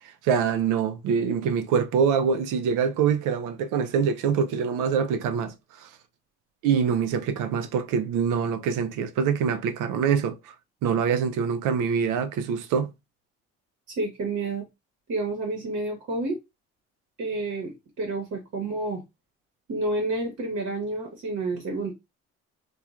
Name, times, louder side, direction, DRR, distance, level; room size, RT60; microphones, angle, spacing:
voice 1, 0.0-5.9 6.6-10.5 10.8-12.9, right 7 dB, 75° right, 0.5 m, -25 dB
voice 2, 14.0-14.6 15.1-16.4 17.2-19.0 19.7-21.9, right 2 dB, 60° right, 1.1 m, -29 dB
2.9 x 2.3 x 2.4 m
supercardioid pair, 60°, 32 cm